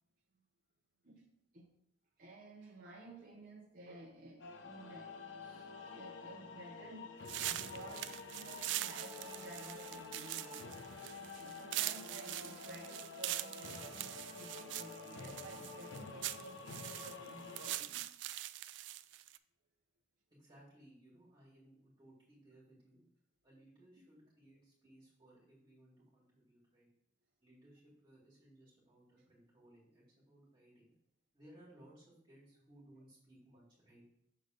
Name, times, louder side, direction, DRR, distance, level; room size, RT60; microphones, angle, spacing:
voice 1, 2.2-5.1 5.4-10.7 11.3-18.1 24.8-24.9, right 1 dB, 50° right, -2 dB, 0.8 m, -53 dB
sound 1, 4.4-17.8, left 4 dB, 85° left, 0.7 m, -49 dB
sound 2, 7.3-19.4, right 14 dB, 70° right, 0.3 m, -43 dB
voice 2, 20.3-23.0 23.4-26.9 27.4-30.9 31.3-34.0, right 1 dB, 25° right, -8 dB, 2.4 m, -62 dB
6.6 x 4.0 x 5.1 m, 0.74 s
head